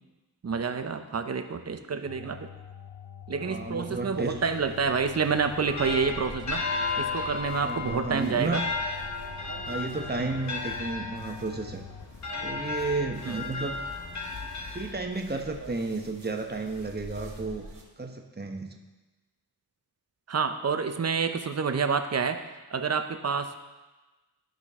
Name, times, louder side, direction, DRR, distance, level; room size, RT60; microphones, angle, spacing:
voice 1, 0.4-2.5 3.3-6.7 7.0-8.6 10.2-10.3 13.2-13.4 20.3-22.4 22.7-23.6, right 5 dB, 40° right, 8 dB, 0.8 m, -28 dB
sound 1, 2.1-12.1, left 8 dB, 70° left, 0.5 m, -46 dB
voice 2, 3.4-4.4 7.6-8.6 9.7-11.8 12.4-13.8 14.7-17.7 18.0-18.7, right 3 dB, 25° right, 3 dB, 1.1 m, -32 dB
sound 2, 4.1-17.8, right 3 dB, 60° right, 1.8 m, -49 dB
sound 3, 5.4-15.3, left 4 dB, 45° left, 1.2 m, -34 dB
13.0 x 5.1 x 3.7 m, 1.2 s
cardioid pair, 50°, 39 cm